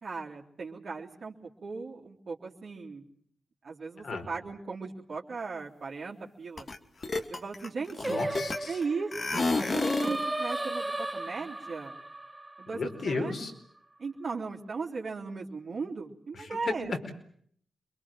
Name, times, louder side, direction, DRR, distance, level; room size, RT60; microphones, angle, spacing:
voice 1, 0.0-3.1 3.6-6.7 7.3-8.3 8.7-12.0 12.6-13.4 14.0-17.0, right 4 dB, 60° right, -4 dB, 3.5 m, -37 dB
sound 1, 6.6-6.8 7.0-8.8 9.1-10.2, left 3 dB, 50° left, 2.3 m, -30 dB
voice 2, 8.0-8.8 12.7-13.5 16.7-16.8, left 3 dB, 65° left, 5 dB, 4.7 m, -33 dB
Singing, 8.0-13.3, right 2 dB, 20° right, 1.0 m, -35 dB
27.5 x 22.5 x 7.6 m, 0.65 s
cardioid pair, 60°, 0 cm